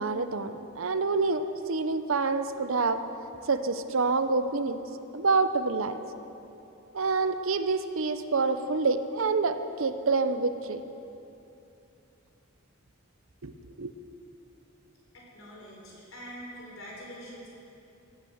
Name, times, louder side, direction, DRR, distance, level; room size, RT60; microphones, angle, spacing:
voice 1, 0.0-3.0 3.4-4.8 5.1-6.0 6.9-10.8 13.4-13.9, right 4 dB, 75° right, 10 dB, 0.8 m, -27 dB
voice 2, 15.1-17.5, equal, 75° left, -3 dB, 4.4 m, -44 dB
16.5 x 9.6 x 7.9 m, 2.8 s
head